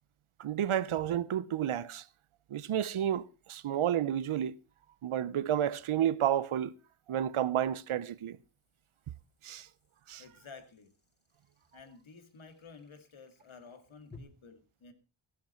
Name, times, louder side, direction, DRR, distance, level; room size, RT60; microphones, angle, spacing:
voice 1, 0.4-2.0 2.5-4.5 5.0-6.7 7.1-8.4 9.4-9.7 10.1-10.2, right 10 dB, 75° right, 0.8 m, -31 dB
sound 1, 0.5-0.6 4.1-14.2, left 4 dB, 20° left, 2.7 m, -64 dB
voice 2, 10.2-10.9 11.7-14.9, left 4 dB, 70° left, 2.3 m, -52 dB
15.0 x 11.5 x 4.3 m
wide cardioid pair, 100°, 49 cm